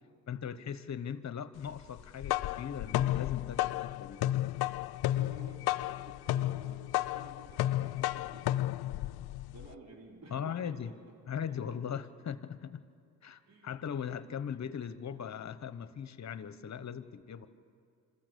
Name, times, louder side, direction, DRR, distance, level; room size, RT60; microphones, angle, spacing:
voice 1, 0.3-4.2 10.3-10.9 11.3-12.8 13.2-17.5, left 8 dB, 45° left, 13 dB, 1.1 m, -39 dB
sound 1, 2.0-9.7, left 14 dB, 75° left, 0.5 m, -32 dB
voice 2, 5.1-8.5 9.5-11.0 13.5-13.8, right 2 dB, 45° right, 0 dB, 3.6 m, -53 dB
26.5 x 14.5 x 6.9 m, 2.4 s
cardioid pair, 75°, 38 cm